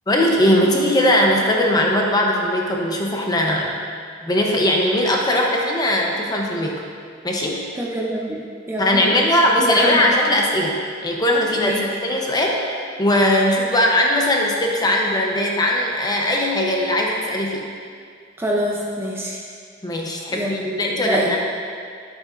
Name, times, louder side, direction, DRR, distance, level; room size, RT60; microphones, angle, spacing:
voice 1, 0.1-3.7 4.2-6.8 7.2-7.6 8.8-17.6 19.8-21.4, left 1 dB, 20° left, -1 dB, 0.8 m, -19 dB
voice 2, 7.7-9.3 9.6-10.1 11.5-11.8 18.4-19.4 20.3-21.4, right 1 dB, 15° right, -3 dB, 0.5 m, -25 dB
9.8 x 7.8 x 2.6 m, 2.2 s
head